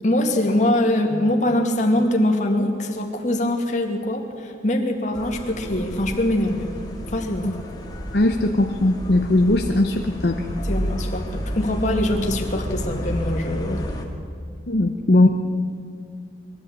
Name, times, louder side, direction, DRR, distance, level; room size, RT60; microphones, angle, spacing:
voice 1, 0.0-6.7 7.1-7.5 10.6-13.8, left 1 dB, 40° left, 2 dB, 2.3 m, -23 dB
sound 1, 5.1-14.0, equal, 20° left, 2.0 m, -31 dB
voice 2, 8.1-10.4 14.7-15.3, left 2 dB, 60° left, 3 dB, 0.9 m, -19 dB
22.0 x 13.5 x 8.9 m, 2.3 s
head